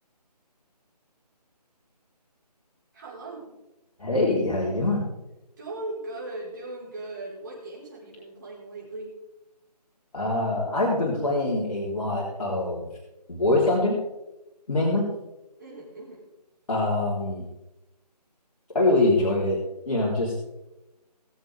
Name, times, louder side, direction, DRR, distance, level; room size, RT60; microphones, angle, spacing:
voice 1, 2.9-3.5 5.6-9.1 15.6-16.2, right 2 dB, 30° right, -5 dB, 4.5 m, -38 dB
voice 2, 4.0-5.0 10.1-12.9 13.3-14.0 14.7-15.1 16.7-17.4 18.7-19.6 19.9-20.4, left 2 dB, 55° left, -6 dB, 3.7 m, -24 dB
20.5 x 7.6 x 3.5 m, 0.96 s
figure-of-eight pair, 170°, 21 cm